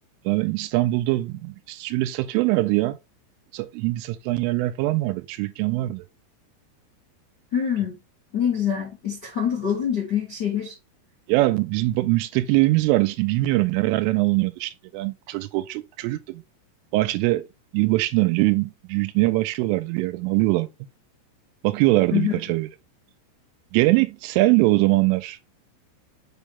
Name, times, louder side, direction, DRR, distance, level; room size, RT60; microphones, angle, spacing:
voice 1, 0.3-3.0 3.5-6.0 11.3-16.4 16.9-17.5 17.7-20.7 21.6-22.7 23.7-25.4, right 19 dB, 85° right, 3.1 m, -22 dB
voice 2, 7.5-8.0 8.3-10.7 22.1-22.4, left 9 dB, 55° left, 1.1 m, -25 dB
7.0 x 4.1 x 3.5 m
omnidirectional pair, 5.7 m